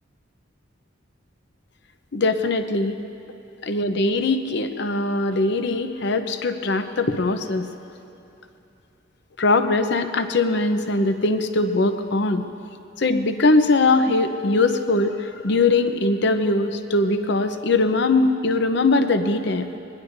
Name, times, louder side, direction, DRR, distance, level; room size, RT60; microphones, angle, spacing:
voice 1, 2.1-3.0 3.7-7.7 9.4-12.4 13.0-19.7, left 2 dB, 60° left, 8 dB, 0.8 m, -21 dB
21.5 x 19.5 x 2.7 m, 2.9 s
head